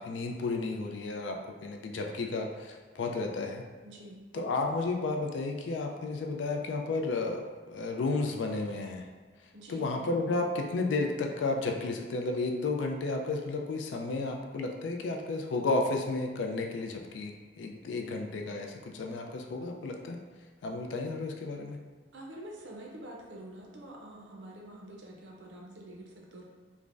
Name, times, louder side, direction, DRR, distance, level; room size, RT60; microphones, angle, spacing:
voice 1, 0.0-3.6 4.3-9.1 9.7-20.2 20.6-21.8, left 3 dB, 80° left, 3 dB, 0.3 m, -32 dB
voice 2, 3.8-4.2 9.5-9.9 22.1-26.4, right 1 dB, 80° right, -1 dB, 0.6 m, -46 dB
3.2 x 2.1 x 2.4 m, 1.4 s
head